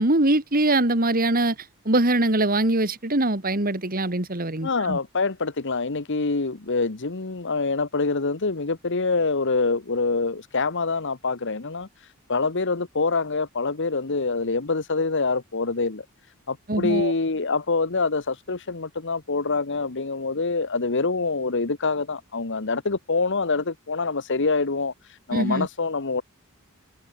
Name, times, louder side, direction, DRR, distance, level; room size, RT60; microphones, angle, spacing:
voice 1, 0.0-5.0 16.7-17.1 25.3-25.7, right 2 dB, 40° right, 2.8 m, -23 dB
voice 2, 4.6-11.9 12.3-16.0 16.5-24.9 25.3-26.2, left 3 dB, 55° left, 1.2 m, -25 dB
head